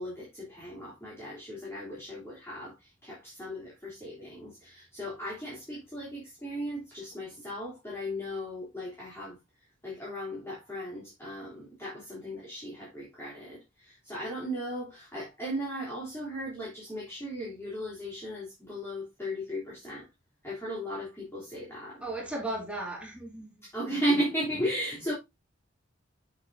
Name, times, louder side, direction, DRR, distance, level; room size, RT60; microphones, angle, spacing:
voice 1, 0.0-9.4 9.8-20.1 20.4-22.0 23.6-25.1, equal, 15° left, 3.2 m, -36 dB
voice 2, 22.0-23.5, right 2 dB, 5° right, 2.2 m, -35 dB
8.1 x 7.7 x 2.7 m
head